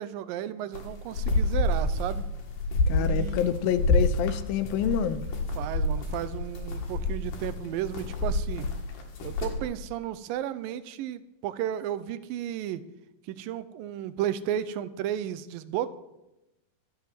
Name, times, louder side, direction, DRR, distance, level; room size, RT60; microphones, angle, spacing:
voice 1, 0.0-2.3 2.9-3.4 5.5-8.7 9.2-12.9 13.2-15.9, right 11 dB, 80° right, 14 dB, 2.2 m, -33 dB
sound 1, 0.7-9.6, left 2 dB, 65° left, 3.2 m, -28 dB
voice 2, 2.9-5.2, left 9 dB, 80° left, 13 dB, 2.4 m, -27 dB
13.5 x 8.2 x 7.6 m, 0.92 s
omnidirectional pair, 4.3 m